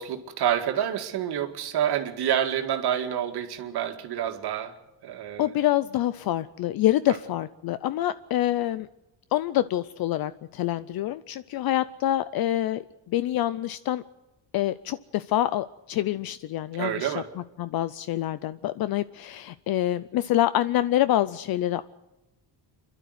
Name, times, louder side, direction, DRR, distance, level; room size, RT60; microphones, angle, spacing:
voice 1, 0.0-4.7 5.0-5.5 7.1-7.2 16.8-17.3, right 10 dB, 65° right, 5 dB, 2.1 m, -28 dB
voice 2, 5.4-8.9 9.3-14.0 14.5-17.1 17.6-21.8, left 13 dB, 60° left, 15 dB, 0.6 m, -26 dB
28.0 x 12.0 x 8.0 m, 1.0 s
cardioid pair, 175°, 42 cm